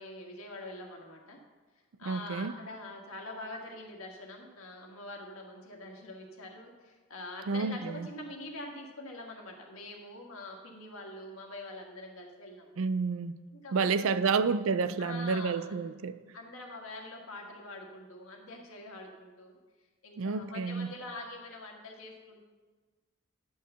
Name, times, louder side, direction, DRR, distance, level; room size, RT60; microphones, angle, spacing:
voice 1, 0.0-1.4 2.0-12.8 13.5-14.4 15.0-15.9 16.3-19.6 20.0-22.4, left 2 dB, 80° left, 1.7 m, -45 dB
voice 2, 2.1-2.5 7.5-8.1 12.8-13.4 13.7-16.2 20.2-20.9, right 5 dB, 70° right, 0.4 m, -30 dB
10.5 x 4.7 x 6.7 m
head